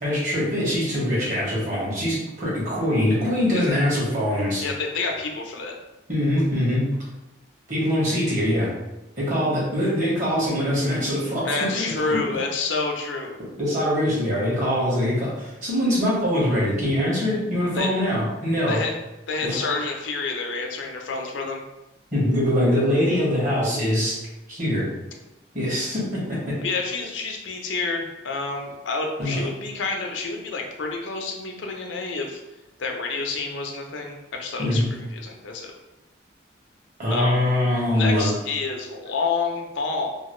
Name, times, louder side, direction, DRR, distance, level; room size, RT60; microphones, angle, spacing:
voice 1, 0.0-4.6 6.1-6.9 7.7-8.7 9.2-11.6 11.8-12.2 13.6-18.8 19.4-19.6 22.1-24.1 24.5-24.8 25.5-26.5 29.2-29.4 34.6-34.9 37.0-38.3, left 1 dB, 45° right, -6 dB, 1.3 m, -23 dB
voice 2, 4.6-5.7 11.4-13.4 17.7-17.9 18.7-19.0 19.3-21.6 26.6-32.4 32.8-35.7 37.1-37.4 37.9-40.1, left 4 dB, 85° left, 2 dB, 0.5 m, -28 dB
2.9 x 2.4 x 3.0 m, 0.97 s
head